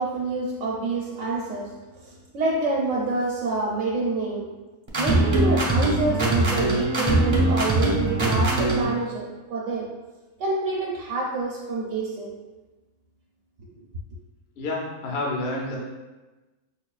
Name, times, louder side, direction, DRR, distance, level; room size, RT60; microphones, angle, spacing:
voice 1, 0.0-4.6 5.0-10.0 10.4-12.3 13.7-13.8, right 3 dB, 75° right, -3 dB, 0.9 m, -27 dB
sound 1, 4.9-8.9, right 2 dB, 30° right, 0.5 m, -22 dB
voice 2, 14.6-15.8, left 2 dB, 60° left, -2 dB, 0.7 m, -29 dB
5.2 x 2.2 x 2.3 m, 1.2 s
omnidirectional pair, 1.3 m